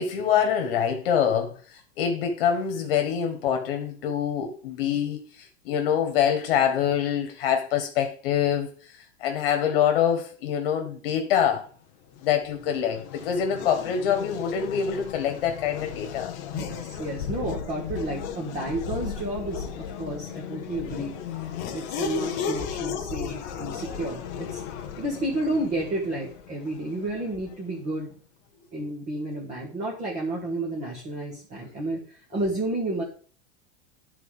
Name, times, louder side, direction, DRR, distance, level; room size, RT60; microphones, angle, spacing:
voice 1, 0.0-8.7 9.2-11.7 12.2-16.3, left 8 dB, 55° left, 1.4 m, -25 dB
Race car auto racing / Accelerating revving vroom, 12.1-27.7, left 7 dB, 15° left, 0.3 m, -35 dB
voice 2, 16.5-21.1 21.7-24.6 25.0-28.1 28.7-33.0, right 1 dB, 20° right, 1.5 m, -31 dB
11.0 x 4.0 x 4.9 m
supercardioid pair, 175°, 34 cm